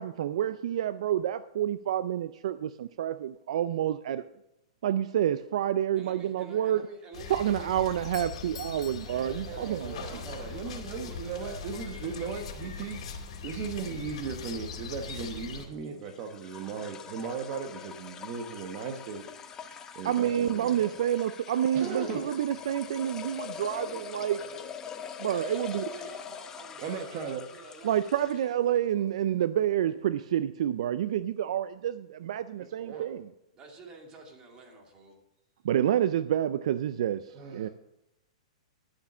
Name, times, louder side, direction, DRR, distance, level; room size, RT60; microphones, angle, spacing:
voice 1, 0.0-4.2 4.8-6.8 7.3-9.9 20.0-24.4 25.2-25.8 27.8-33.3 35.6-37.7, right 11 dB, 65° right, 14 dB, 0.4 m, -28 dB
voice 2, 5.9-8.5 9.3-12.7 23.8-24.7 25.3-29.1 33.5-35.2, right 2 dB, 25° right, 2 dB, 2.2 m, -49 dB
sound 1, 7.1-15.7, left 6 dB, 65° left, 2.3 m, -41 dB
Doorbell, 7.9-10.1, left 8 dB, 85° left, 0.9 m, -48 dB
voice 3, 9.0-19.3 19.7-21.0 21.7-22.4 26.8-27.4 32.6-33.2 37.3-37.7, right 5 dB, 40° right, 5 dB, 1.1 m, -37 dB
sound 2, 11.4-28.6, left 7 dB, 15° left, 0.8 m, -43 dB
11.5 x 7.1 x 6.1 m, 0.87 s
hypercardioid pair, 150°, 4 cm